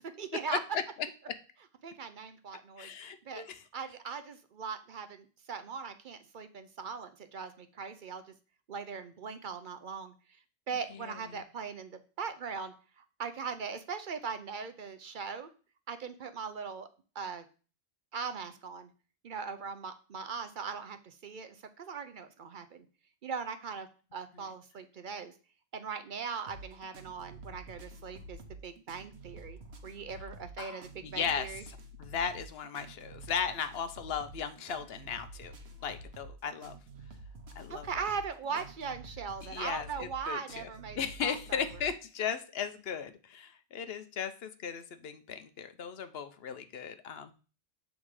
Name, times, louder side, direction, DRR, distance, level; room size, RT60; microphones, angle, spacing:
voice 1, 0.2-0.6 1.8-3.4 3.7-8.2 8.7-10.1 10.7-15.5 15.9-16.9 17.2-17.4 18.1-18.9 19.2-22.8 23.2-25.3 25.7-31.6 37.7-41.6, right 6 dB, 55° right, 9 dB, 0.7 m, -40 dB
voice 2, 2.8-3.6 10.9-11.4 24.3-24.4 30.6-31.5 32.0-35.5 35.8-36.7 37.6-37.9 39.4-40.7 41.0-47.3, left 7 dB, 70° left, 10 dB, 0.9 m, -37 dB
sound 1, 26.5-41.9, right 1 dB, 80° right, 1.3 m, -49 dB
7.2 x 3.7 x 4.8 m, 0.37 s
omnidirectional pair, 1.1 m